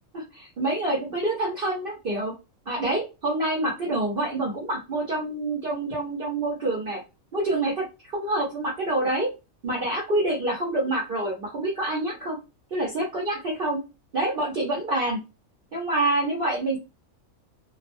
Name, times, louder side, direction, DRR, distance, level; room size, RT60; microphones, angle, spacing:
voice 1, 0.1-2.3 2.7-7.0 7.3-9.3 9.6-12.4 12.7-13.8 14.1-15.2 15.7-16.8, right 2 dB, 50° right, -4 dB, 0.9 m, -27 dB
2.3 x 2.2 x 2.6 m, 0.27 s
omnidirectional pair, 1.4 m